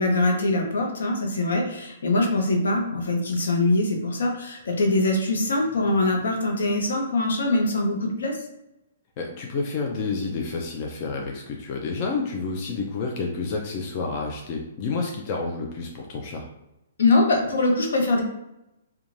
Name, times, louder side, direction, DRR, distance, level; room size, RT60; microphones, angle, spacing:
voice 1, 0.0-8.4 17.0-18.2, left 2 dB, 80° left, 1 dB, 0.7 m, -23 dB
voice 2, 9.2-16.5, left 4 dB, 40° left, 1 dB, 0.4 m, -29 dB
2.4 x 2.2 x 3.1 m, 0.89 s
hypercardioid pair, 140°, 0 cm